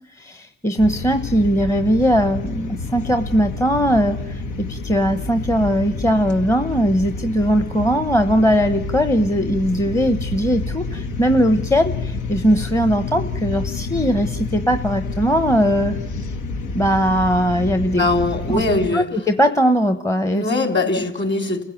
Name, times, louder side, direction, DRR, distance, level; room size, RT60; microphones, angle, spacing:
voice 1, 0.2-16.0 16.7-18.1 18.5-18.6 18.9-20.4, equal, 10° left, 8 dB, 1.0 m, -19 dB
sound 1, 0.8-18.9, left 3 dB, 80° left, 1.7 m, -29 dB
voice 2, 18.0-19.1 20.3-21.6, left 2 dB, 35° left, 5 dB, 3.8 m, -21 dB
29.5 x 15.5 x 9.1 m, 0.86 s
cardioid pair, 90°, 30 cm